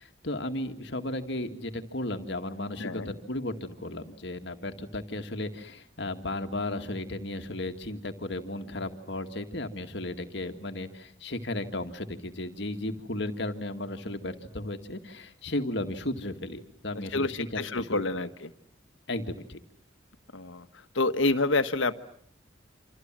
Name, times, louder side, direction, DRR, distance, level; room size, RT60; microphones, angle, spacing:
voice 1, 0.0-18.2 19.1-19.6, left 1 dB, 60° left, 6 dB, 2.1 m, -35 dB
voice 2, 2.8-3.1 17.1-18.5 20.3-20.7 20.9-21.9, left 2 dB, 75° left, 10 dB, 1.5 m, -28 dB
28.0 x 27.0 x 7.6 m, 0.63 s
head